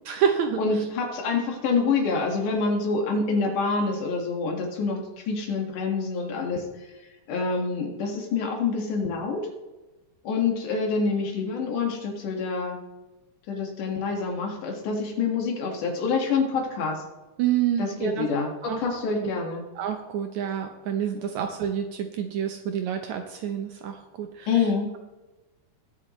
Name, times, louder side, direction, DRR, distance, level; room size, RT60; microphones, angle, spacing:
voice 1, 0.1-0.9 17.4-18.3 18.6-18.8 19.1-19.3 19.8-24.7, right 9 dB, 80° right, 5 dB, 1.6 m, -28 dB
voice 2, 0.6-6.6 7.3-9.5 10.2-12.8 13.5-17.0 17.8-19.6 24.5-24.9, left 4 dB, 65° left, 1 dB, 3.0 m, -26 dB
20.5 x 7.3 x 3.1 m, 1.1 s
omnidirectional pair, 4.2 m